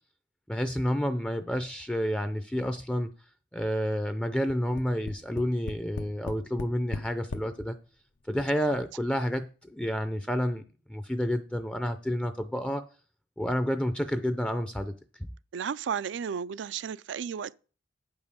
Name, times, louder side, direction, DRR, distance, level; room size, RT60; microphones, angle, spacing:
voice 1, 0.5-3.1 3.5-7.8 8.3-10.6 10.9-12.8 13.4-14.9 15.2-15.3, equal, 5° left, 0.4 m, -29 dB
Tap, 4.5-7.5 8.3-8.4 8.7-8.8, left 3 dB, 80° left, 0.7 m, -38 dB
voice 2, 15.5-17.6, right 7 dB, 80° right, 0.4 m, -33 dB
8.8 x 5.5 x 6.7 m
head